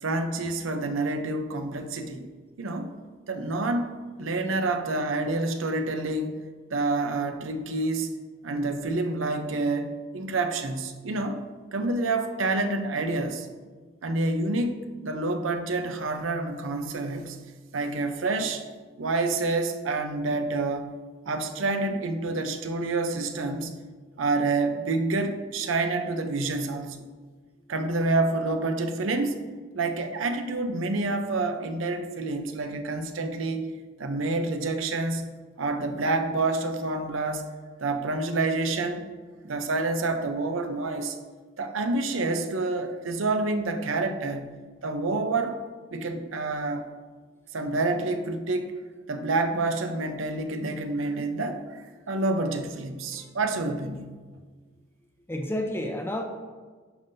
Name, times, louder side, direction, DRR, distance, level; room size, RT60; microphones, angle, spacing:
voice 1, 0.0-2.3 2.6-2.9 3.3-6.4 6.7-8.1 8.4-11.4 11.7-13.5 14.0-17.4 17.7-18.7 19.0-20.9 21.3-23.8 24.2-27.0 27.7-29.4 29.7-33.7 34.0-35.3 35.6-37.4 37.8-39.1 39.4-41.2 41.6-44.5 44.8-45.6 45.9-46.8 47.5-48.8 49.1-54.1, right 2 dB, 90° right, 7 dB, 0.6 m, -28 dB
voice 2, 55.3-56.2, left 1 dB, 10° left, 3 dB, 0.6 m, -30 dB
10.5 x 5.4 x 2.7 m, 1.5 s
head